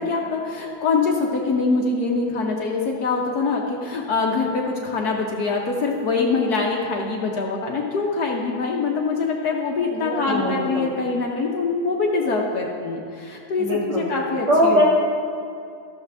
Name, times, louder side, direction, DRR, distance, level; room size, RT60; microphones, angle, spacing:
voice 1, 0.0-14.8, left 4 dB, 60° left, -1 dB, 1.1 m, -24 dB
voice 2, 9.9-10.9 13.6-14.1 14.5-14.8, equal, 90° right, -6 dB, 3.1 m, -21 dB
14.5 x 6.7 x 3.3 m, 2.4 s
omnidirectional pair, 2.3 m